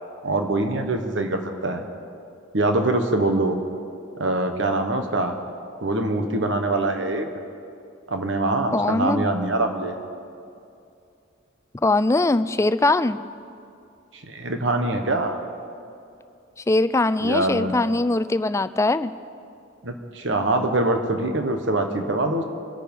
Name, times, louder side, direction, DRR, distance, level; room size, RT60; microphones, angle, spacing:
voice 1, 0.2-1.8 2.5-3.6 4.2-5.3 5.8-7.3 8.1-9.9 14.1-15.4 17.2-17.7 19.8-22.4, right 2 dB, 65° right, 5 dB, 1.3 m, -24 dB
voice 2, 8.7-9.3 11.8-13.2 16.7-19.1, left 2 dB, 15° left, 13 dB, 0.4 m, -21 dB
26.0 x 9.3 x 5.4 m, 2.5 s
head